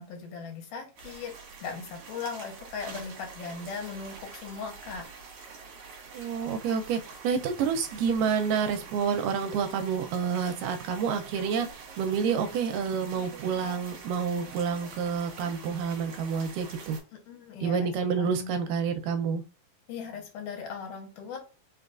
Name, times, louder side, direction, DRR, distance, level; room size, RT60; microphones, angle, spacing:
voice 1, 0.0-1.3 1.6-5.1 17.3-17.9 18.2-18.6 19.9-21.4, left 5 dB, 80° left, 3 dB, 2.4 m, -38 dB
sound 1, 1.0-17.0, right 5 dB, 65° right, 2.2 m, -46 dB
voice 2, 6.1-17.0 17.6-19.4, right 6 dB, 85° right, 6 dB, 2.1 m, -29 dB
5.1 x 2.3 x 2.4 m, 0.34 s
omnidirectional pair, 3.8 m